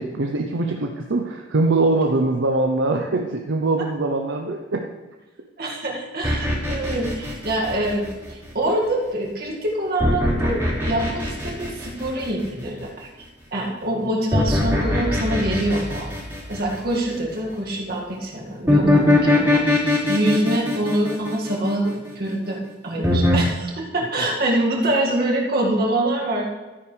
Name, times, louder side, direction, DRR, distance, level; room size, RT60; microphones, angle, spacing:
voice 1, 0.0-4.9, right 2 dB, 75° right, 2 dB, 0.7 m, -22 dB
voice 2, 5.6-13.1 13.5-16.1 16.5-26.5, right 1 dB, 55° right, -2 dB, 2.0 m, -25 dB
sound 1, 6.2-8.4 10.0-12.7 14.3-17.2 18.7-22.1 23.0-23.4, left 1 dB, 10° right, 3.8 m, -21 dB
13.0 x 9.8 x 3.3 m, 1.2 s
head